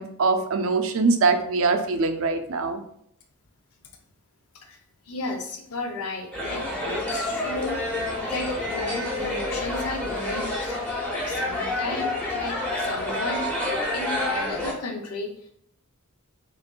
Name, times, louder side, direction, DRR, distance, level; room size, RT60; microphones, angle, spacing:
voice 1, 0.0-2.8, right 4 dB, 65° right, 6 dB, 0.5 m, -23 dB
voice 2, 5.0-15.5, left 3 dB, 75° left, 3 dB, 0.6 m, -34 dB
sound 1, 6.3-14.7, left 1 dB, 5° left, 0.8 m, -28 dB
5.2 x 2.6 x 2.2 m, 0.70 s
head